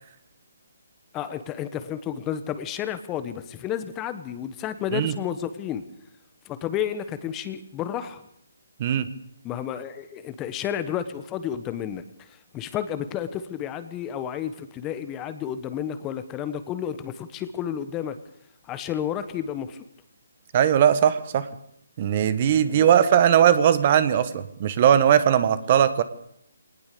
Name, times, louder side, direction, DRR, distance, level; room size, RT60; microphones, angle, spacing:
voice 1, 1.1-5.8 6.4-8.2 9.4-18.2 18.6-19.8 22.6-22.9, left 9 dB, 15° left, 11 dB, 1.2 m, -31 dB
voice 2, 20.5-21.5 22.0-26.0, right 9 dB, 35° right, 14 dB, 1.4 m, -19 dB
21.5 x 19.0 x 6.9 m, 0.71 s
hypercardioid pair, 155°, 0 cm